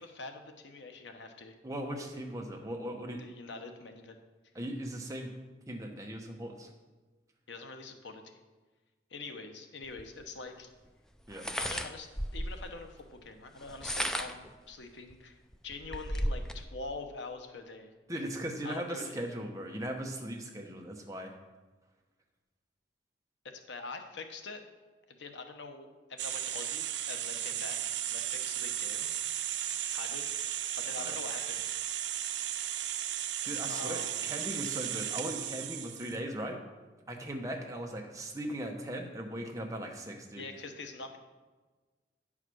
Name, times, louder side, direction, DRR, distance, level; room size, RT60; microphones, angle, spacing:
voice 1, 0.0-1.6 3.2-4.2 7.5-8.3 9.1-10.7 11.6-12.1 12.3-15.4 15.6-17.9 18.6-19.2 23.5-24.6 25.2-29.1 29.9-30.5 30.8-31.6 33.7-34.3 40.3-41.2, left 3 dB, 90° left, 6 dB, 1.0 m, -44 dB
voice 2, 1.6-3.2 4.5-5.3 5.7-6.7 11.3-11.4 18.1-21.4 31.0-31.1 33.4-36.6 37.1-40.4, right 1 dB, 20° right, 2 dB, 1.0 m, -38 dB
sound 1, 10.0-10.1 11.3-12.7 13.6-14.5 15.1-15.2 15.5-16.6, equal, 5° left, 0.3 m, -34 dB
sound 2, 26.2-36.2, right 11 dB, 80° right, 0.6 m, -35 dB
9.7 x 4.9 x 6.2 m, 1.3 s
head